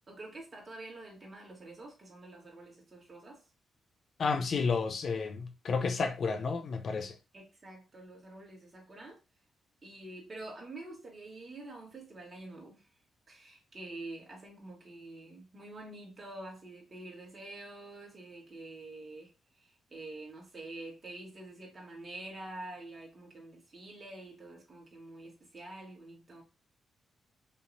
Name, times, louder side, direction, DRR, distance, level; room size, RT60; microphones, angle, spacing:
voice 1, 0.1-3.4 7.3-9.2 9.8-12.8 13.3-26.4, right 2 dB, 40° right, 2.5 m, -47 dB
voice 2, 4.2-7.2, left 4 dB, 60° left, 0.7 m, -31 dB
5.4 x 3.0 x 2.7 m
supercardioid pair, 55°, 0 cm